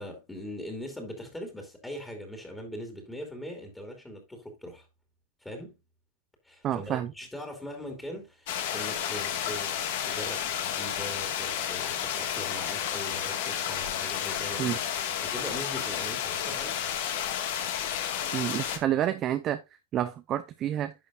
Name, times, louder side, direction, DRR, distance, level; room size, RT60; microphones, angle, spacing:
voice 1, 0.0-4.9 5.4-5.7 6.4-9.8 10.0-16.8, equal, 5° left, 2.5 m, -41 dB
voice 2, 6.6-7.1 14.6-14.8 18.3-19.6 19.9-20.9, right 11 dB, 30° right, 0.7 m, -29 dB
sound 1, 8.5-18.8, left 9 dB, 65° left, 1.8 m, -31 dB
11.0 x 6.6 x 2.5 m
supercardioid pair, 140°, 0 cm